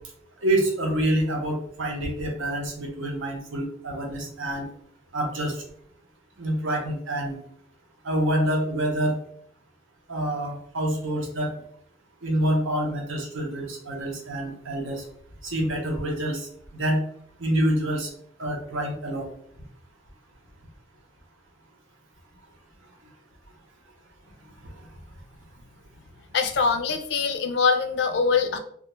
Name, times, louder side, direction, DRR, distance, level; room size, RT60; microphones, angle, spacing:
voice 1, 0.4-4.7 5.1-5.6 6.4-7.4 8.0-9.2 10.1-11.5 12.2-15.0 15.4-16.5 16.7-17.0 17.4-18.1 18.4-19.3, right 1 dB, 80° right, 1 dB, 0.7 m, -27 dB
voice 2, 26.3-28.6, left 5 dB, 60° left, 6 dB, 0.4 m, -23 dB
2.3 x 2.2 x 3.0 m, 0.66 s
head